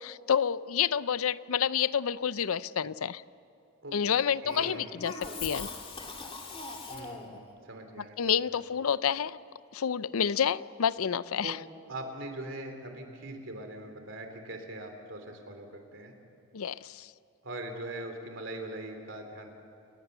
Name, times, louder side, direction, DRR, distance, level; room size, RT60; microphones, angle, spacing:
voice 1, 0.0-3.2 3.9-5.1 5.4-5.7 8.2-9.4 9.7-11.6 16.5-17.1, left 8 dB, 80° left, 17 dB, 0.5 m, -29 dB
voice 2, 4.4-5.0 6.9-8.3 11.4-11.6 11.9-16.1 17.4-19.5, right 1 dB, 60° right, 5 dB, 3.4 m, -41 dB
Cough, 4.5-7.4, left 4 dB, 25° left, 2.5 m, -40 dB
29.5 x 19.5 x 6.9 m, 2.7 s
head